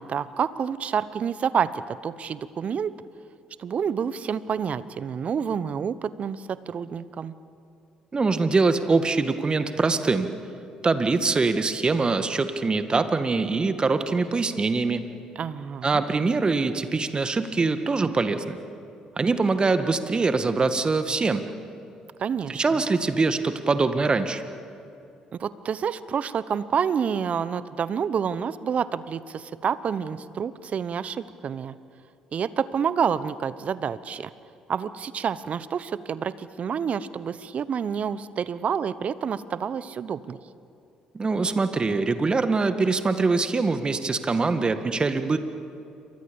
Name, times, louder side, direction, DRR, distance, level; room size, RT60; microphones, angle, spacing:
voice 1, 0.0-2.9 3.6-7.3 15.4-16.0 22.2-22.8 25.4-31.7 32.3-34.3 34.7-40.4, right 7 dB, 50° right, 16 dB, 1.0 m, -28 dB
voice 2, 8.1-10.3 10.8-15.0 15.8-18.6 19.2-21.4 22.5-24.4 41.1-45.4, right 3 dB, 30° right, 9 dB, 1.9 m, -23 dB
28.0 x 25.0 x 7.1 m, 2.6 s
hypercardioid pair, 50°, 3 cm